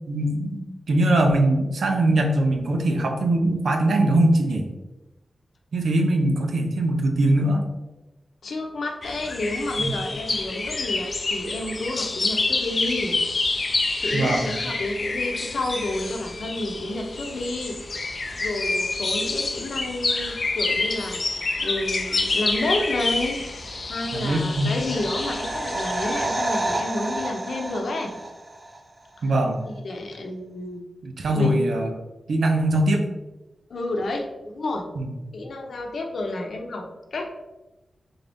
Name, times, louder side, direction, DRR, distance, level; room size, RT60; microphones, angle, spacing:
voice 1, 0.1-0.6 0.9-4.7 5.7-7.6 9.8-9.9 14.1-14.5 24.1-24.7 29.2-29.6 31.0-31.9 32.3-33.0 35.0-35.1, right 1 dB, 90° right, 3 dB, 0.7 m, -21 dB
voice 2, 8.4-13.1 14.0-17.8 18.4-21.2 21.6-23.4 23.9-28.1 29.6-30.8 31.3-31.6 33.7-34.8 35.3-36.8 37.1-37.3, left 2 dB, 70° left, 2 dB, 0.7 m, -30 dB
sound 1, 9.0-26.3, left 3 dB, 40° left, 0.4 m, -28 dB
sound 2, 23.9-28.8 29.1-29.2, right 1 dB, 30° right, 0.6 m, -30 dB
3.9 x 3.9 x 3.5 m, 1.0 s
wide cardioid pair, 175°, 0 cm